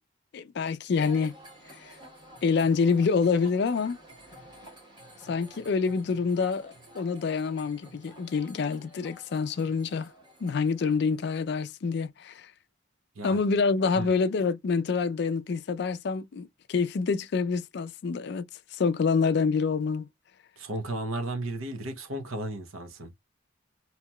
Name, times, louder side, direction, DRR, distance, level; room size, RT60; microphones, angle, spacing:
voice 1, 0.3-1.3 1.9-2.0 2.4-4.0 5.3-10.1 10.4-12.5 13.2-18.5 18.7-20.1, left 5 dB, 55° left, 0.3 m, -27 dB
sound 1, 1.0-11.2, right 1 dB, 20° right, 1.2 m, -51 dB
voice 2, 20.6-23.2, right 2 dB, 85° right, 0.8 m, -34 dB
2.9 x 2.8 x 2.2 m
head